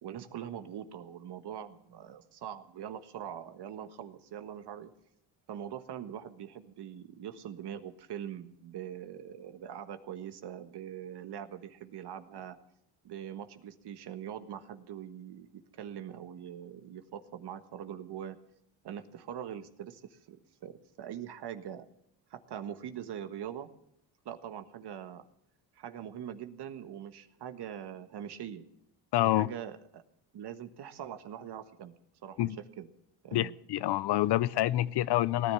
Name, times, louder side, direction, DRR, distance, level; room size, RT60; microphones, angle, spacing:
voice 1, 0.0-4.9 5.5-12.6 13.0-18.4 18.8-21.8 22.3-23.7 24.2-25.2 25.7-28.6 29.2-30.0 30.3-31.9 32.2-32.9 33.2-33.5, right 9 dB, 60° right, 1.5 m, -42 dB
voice 2, 29.1-29.5 32.4-32.6 33.3-35.5, left 14 dB, 60° left, 0.7 m, -27 dB
18.5 x 10.5 x 7.0 m
cardioid pair, 85°, 46 cm